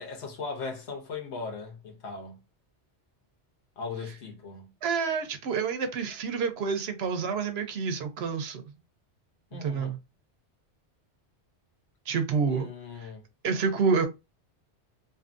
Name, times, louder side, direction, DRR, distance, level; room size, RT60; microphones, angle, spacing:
voice 1, 0.0-2.4 3.8-4.7 9.5-9.9 12.4-13.2, left 4 dB, 75° left, 1.1 m, -38 dB
voice 2, 4.8-8.6 9.6-10.0 12.1-12.7 13.4-14.1, right 5 dB, 70° right, 0.8 m, -28 dB
2.6 x 2.5 x 2.5 m
omnidirectional pair, 1.2 m